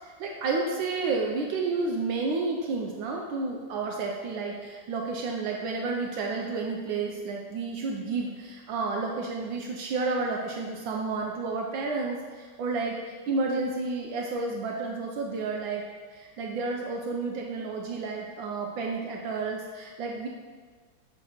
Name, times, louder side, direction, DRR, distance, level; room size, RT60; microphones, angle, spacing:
voice 1, 0.0-15.8 16.1-20.3, right 3 dB, 75° right, 0 dB, 1.3 m, -31 dB
7.4 x 3.3 x 4.2 m, 1.5 s
omnidirectional pair, 2.3 m